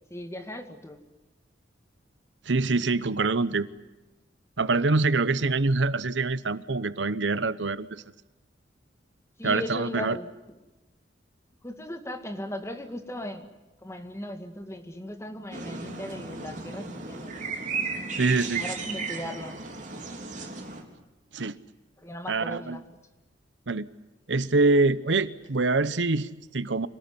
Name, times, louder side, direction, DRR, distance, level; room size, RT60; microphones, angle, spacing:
voice 1, 0.1-1.0 9.4-10.3 11.6-13.5 13.8-17.6 17.9-18.0 18.6-19.6 22.0-22.8, left 1 dB, 15° left, 7 dB, 2.1 m, -37 dB
voice 2, 2.5-3.7 4.6-8.0 9.4-10.2 18.1-18.6 21.3-21.6 22.3-22.8 23.7-23.9 24.3-26.9, right 3 dB, 80° right, 16 dB, 0.9 m, -25 dB
sound 1, 15.5-20.8, right 4 dB, 45° right, 3.5 m, -35 dB
26.5 x 18.5 x 9.8 m, 1.0 s
head